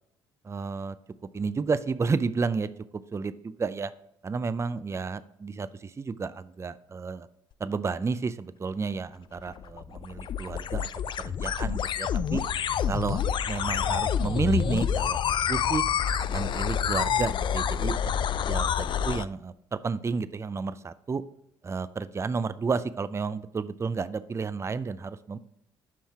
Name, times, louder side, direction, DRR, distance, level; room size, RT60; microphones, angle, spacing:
voice 1, 0.4-1.0 1.3-2.7 3.1-3.9 4.2-7.3 7.6-10.9 11.2-12.4 12.9-13.2 13.5-15.8 16.3-18.0 18.5-21.2 21.6-25.4, right 4 dB, 25° right, 14 dB, 0.5 m, -31 dB
sound 1, 9.4-19.3, left 8 dB, 45° left, 0.4 m, -28 dB
7.4 x 5.5 x 3.5 m, 0.76 s
hypercardioid pair, 60°, 11 cm